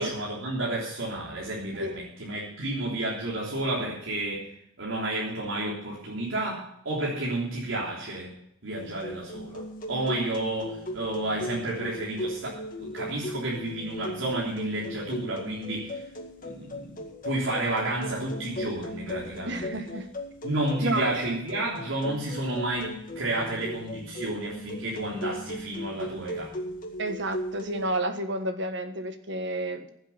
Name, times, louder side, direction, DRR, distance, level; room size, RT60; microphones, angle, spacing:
voice 1, 0.0-4.5 4.8-8.3 8.6-9.6 9.9-16.0 16.4-19.7 20.4-26.6, right 1 dB, 80° right, -5 dB, 3.4 m, -31 dB
voice 2, 1.8-2.1 19.5-20.0 20.8-21.1 27.0-29.9, right 1 dB, 60° right, 8 dB, 1.5 m, -30 dB
sound 1, 8.8-27.9, equal, 45° left, 2.0 m, -37 dB
15.5 x 8.0 x 5.8 m, 0.74 s
head